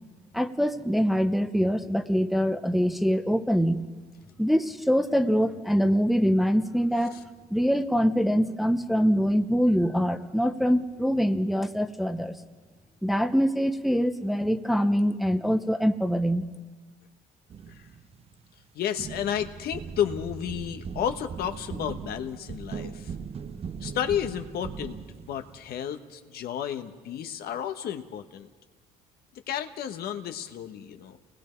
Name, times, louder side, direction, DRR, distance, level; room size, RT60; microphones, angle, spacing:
voice 1, 0.3-3.8 4.4-7.1 7.5-12.4 13.0-16.4, equal, ahead, 7 dB, 0.9 m, -24 dB
sound 1, 17.5-18.6 19.0-25.8, right 6 dB, 35° right, 0.8 m, -39 dB
voice 2, 18.7-23.1 23.8-25.0 25.3-28.5 29.5-31.2, left 9 dB, 65° left, 8 dB, 1.3 m, -32 dB
29.0 x 20.0 x 4.5 m, 1.4 s
cardioid pair, 110°, 17 cm